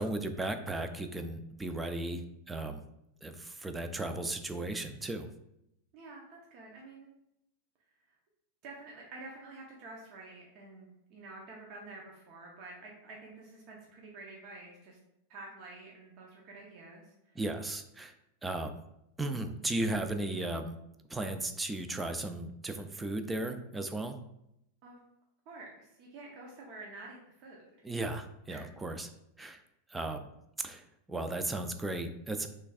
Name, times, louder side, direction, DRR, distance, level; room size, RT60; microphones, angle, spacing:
voice 1, 0.0-2.2 2.5-2.8 3.2-5.3 17.4-18.1 18.4-18.8 19.2-20.8 21.1-24.2 27.8-29.1 29.4-29.6 29.9-30.3 30.6-32.5, right 2 dB, 10° right, 7 dB, 0.3 m, -35 dB
voice 2, 5.9-7.1 8.6-15.0 15.3-17.4 24.8-25.0 25.5-27.6 28.5-28.6, right 2 dB, 40° right, -2 dB, 0.8 m, -49 dB
5.9 x 3.2 x 2.4 m, 0.82 s
supercardioid pair, 165°, 0 cm